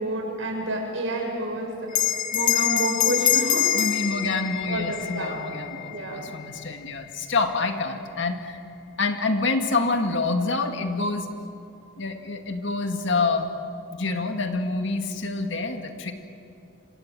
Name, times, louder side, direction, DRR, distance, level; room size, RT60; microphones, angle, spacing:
voice 1, 0.0-3.7 4.7-5.4 5.9-6.3, right 1 dB, 70° right, 1 dB, 6.9 m, -29 dB
Bell, 1.9-6.8, left 11 dB, 45° left, 1.5 m, -25 dB
voice 2, 3.7-8.6 9.0-11.3 12.0-13.5 13.9-16.1, left 3 dB, 65° left, 5 dB, 2.1 m, -27 dB
28.0 x 25.5 x 7.7 m, 2.6 s
head